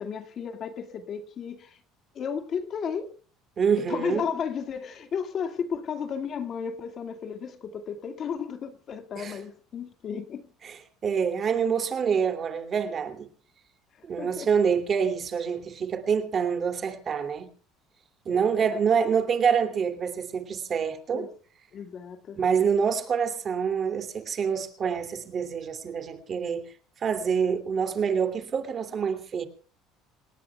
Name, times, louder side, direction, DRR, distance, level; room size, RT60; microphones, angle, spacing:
voice 1, 0.0-1.8 2.1-3.1 3.9-10.5 14.0-14.5 18.3-18.8 21.1-21.3 21.7-22.4, left 7 dB, 40° left, 2.0 m, -34 dB
voice 2, 3.6-4.3 9.2-9.4 10.6-13.3 14.0-17.5 18.2-21.3 22.4-26.7 27.0-29.5, right 6 dB, 30° right, 2.7 m, -26 dB
29.0 x 18.5 x 2.3 m
cardioid pair, 145°, 0 cm